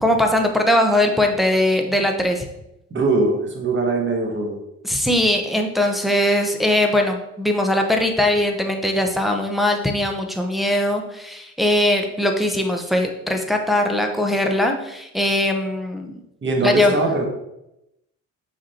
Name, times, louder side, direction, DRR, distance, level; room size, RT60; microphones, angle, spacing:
voice 1, 0.0-2.4 4.8-16.2 16.6-16.9, left 1 dB, ahead, 2 dB, 0.9 m, -20 dB
voice 2, 2.9-4.6 16.4-17.3, right 2 dB, 40° right, 2 dB, 1.5 m, -21 dB
5.9 x 4.3 x 4.3 m, 0.85 s
cardioid pair, 90°, 30 cm